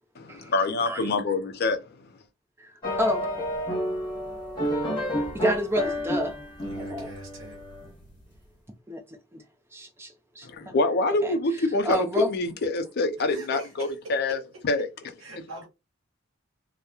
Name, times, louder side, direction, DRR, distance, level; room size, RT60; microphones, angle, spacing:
voice 1, 0.2-1.8 10.4-14.9, left 2 dB, 50° left, 0.4 m, -26 dB
sound 1, 2.8-8.1, equal, 20° left, 1.1 m, -30 dB
voice 2, 3.0-3.3 5.3-6.4 6.8-7.1 8.9-9.0 9.3-9.4 9.7-10.7 11.2-11.3 11.8-12.3, left 1 dB, 10° right, 0.4 m, -29 dB
voice 3, 6.7-7.6 13.3-14.1 15.2-15.7, right 3 dB, 65° right, 0.9 m, -41 dB
2.9 x 2.0 x 2.3 m
head